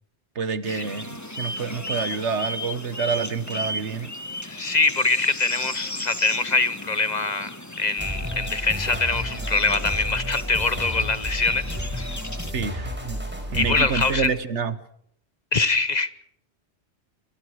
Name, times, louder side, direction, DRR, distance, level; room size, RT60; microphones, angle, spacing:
voice 1, 0.3-4.1 12.5-13.2 13.5-14.8, right 5 dB, 80° right, 1.6 m, -28 dB
sound 1, 0.6-12.5, left 1 dB, 15° left, 1.5 m, -36 dB
voice 2, 4.4-12.2 13.5-14.3 15.5-16.1, left 3 dB, 40° left, 1.1 m, -24 dB
sound 2, 8.0-14.3, equal, 10° right, 5.4 m, -32 dB
28.0 x 25.0 x 4.9 m
omnidirectional pair, 1.2 m